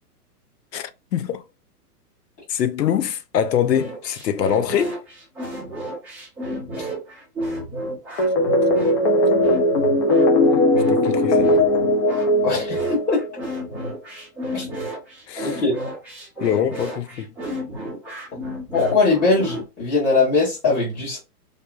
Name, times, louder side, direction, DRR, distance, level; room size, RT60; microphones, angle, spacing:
voice 1, 0.7-1.4 2.5-5.0 10.9-11.6 15.3-15.6 16.4-17.3, left 9 dB, 90° left, 0.7 m, -24 dB
sound 1, 3.7-19.6, equal, 5° right, 0.5 m, -32 dB
sound 2, 8.2-13.3, left 1 dB, 40° left, 0.8 m, -18 dB
voice 2, 12.4-13.2 14.5-14.7 15.4-15.8 18.7-21.2, left 3 dB, 15° left, 1.1 m, -20 dB
3.5 x 2.7 x 2.4 m
hypercardioid pair, 140°, 47 cm